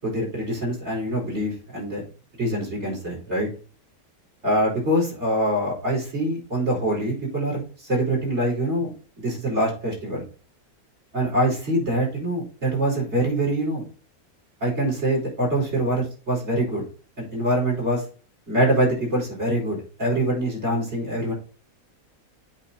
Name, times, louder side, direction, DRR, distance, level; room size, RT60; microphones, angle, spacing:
voice 1, 0.0-2.0 2.4-3.5 4.4-8.9 9.2-10.2 11.1-13.9 14.6-16.9 17.2-18.0 18.5-21.3, right 1 dB, 45° right, -3 dB, 4.9 m, -24 dB
8.0 x 4.3 x 5.4 m, 0.37 s
omnidirectional pair, 1.6 m